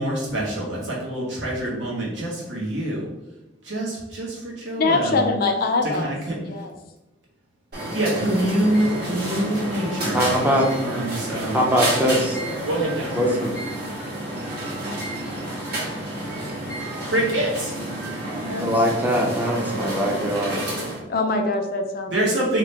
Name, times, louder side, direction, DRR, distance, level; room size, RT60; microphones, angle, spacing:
voice 1, 0.0-3.1 3.6-5.2 5.8-6.4 7.9-10.2 10.7-11.6 12.6-13.2 17.0-17.7 22.1-22.6, right 1 dB, 80° right, -5 dB, 1.3 m, -25 dB
voice 2, 4.8-6.2 6.4-6.7 21.1-22.1, left 3 dB, 55° left, 4 dB, 0.4 m, -23 dB
sound 1, 7.7-21.0, right 1 dB, 55° right, 1.4 m, -30 dB
voice 3, 10.1-10.7 11.5-12.4 13.1-13.5 18.6-20.6, equal, 10° right, -2 dB, 0.5 m, -21 dB
2.9 x 2.7 x 3.3 m, 0.95 s
head